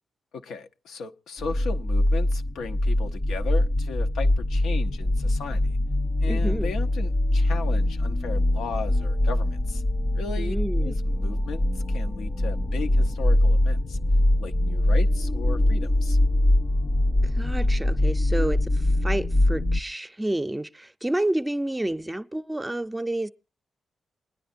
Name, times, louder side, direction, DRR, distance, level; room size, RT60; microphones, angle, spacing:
voice 1, 0.3-5.8 6.2-9.8 10.1-10.6 10.8-11.6 11.9-14.0 14.4-16.2, left 5 dB, 85° left, 0.6 m, -36 dB
sound 1, 1.4-19.8, left 1 dB, 40° left, 0.6 m, -23 dB
voice 2, 6.3-6.7 10.4-11.0 17.4-18.7 19.0-23.3, right 1 dB, 15° right, 0.6 m, -29 dB
28.0 x 10.0 x 2.5 m
supercardioid pair, 55°, 0 cm